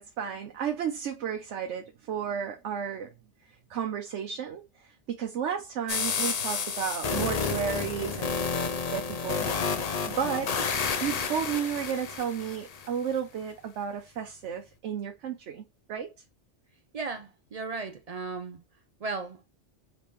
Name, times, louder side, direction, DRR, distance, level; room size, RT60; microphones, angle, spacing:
voice 1, 0.0-3.1 3.7-4.6 5.1-8.5 8.9-9.5 10.1-16.1, right 8 dB, 90° right, 1.0 m, -33 dB
sound 1, 5.9-12.9, left 5 dB, 45° left, 0.5 m, -30 dB
voice 2, 10.2-10.7 16.9-18.6 19.0-19.5, right 4 dB, 50° right, 0.4 m, -36 dB
5.1 x 3.3 x 3.0 m
omnidirectional pair, 1.2 m